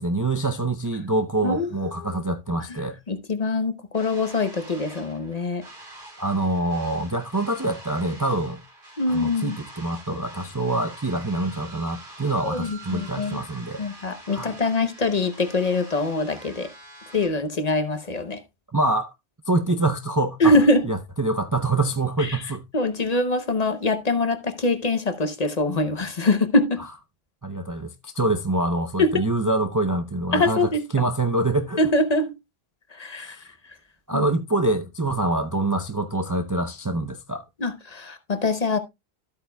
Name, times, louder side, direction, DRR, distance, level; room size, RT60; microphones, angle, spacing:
voice 1, 0.0-3.0 6.2-8.6 9.1-13.8 14.3-14.6 18.7-19.1 19.5-20.5 20.9-22.6 27.4-31.8 33.2-33.4 34.1-37.4, right 2 dB, 25° right, 0.5 m, -25 dB
voice 2, 1.4-1.9 3.1-5.6 9.0-9.6 12.4-13.4 13.8-16.7 17.1-18.4 20.4-20.8 22.2-22.4 22.7-26.8 29.0-29.1 30.3-30.8 31.8-32.3 32.9-33.4 34.1-34.2 37.6-38.8, left 2 dB, 40° left, 0.8 m, -23 dB
sound 1, 3.9-17.3, right 2 dB, 55° right, 3.8 m, -45 dB
13.0 x 8.3 x 2.2 m
omnidirectional pair, 1.1 m